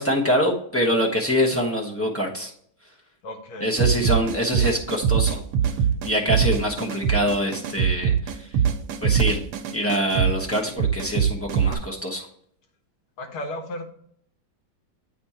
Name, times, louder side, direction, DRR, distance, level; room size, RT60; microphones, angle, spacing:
voice 1, 0.0-2.5 3.6-5.4 6.0-8.1 9.0-9.4 9.7-12.3, equal, 15° left, -2 dB, 0.4 m, -24 dB
voice 2, 3.2-3.8 13.2-13.9, left 1 dB, 75° left, 3 dB, 2.1 m, -34 dB
sound 1, 3.8-11.7, right 8 dB, 90° right, 1.7 m, -23 dB
8.5 x 4.3 x 4.3 m, 0.65 s
omnidirectional pair, 2.3 m